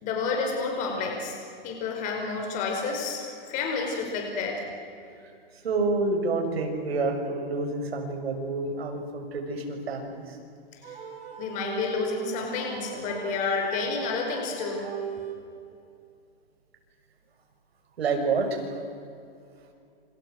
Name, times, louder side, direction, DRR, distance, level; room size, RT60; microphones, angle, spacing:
voice 1, 0.0-1.4 1.6-4.7 10.7-11.0 11.4-14.9, left 4 dB, 25° left, 2 dB, 5.2 m, -30 dB
voice 2, 5.6-10.4 18.0-18.8, right 3 dB, 90° right, 4 dB, 6.6 m, -28 dB
sound 1, 10.8-15.7, right 7 dB, 70° right, 5.0 m, -39 dB
27.5 x 27.5 x 6.5 m, 2.5 s
hypercardioid pair, 165°, 30 cm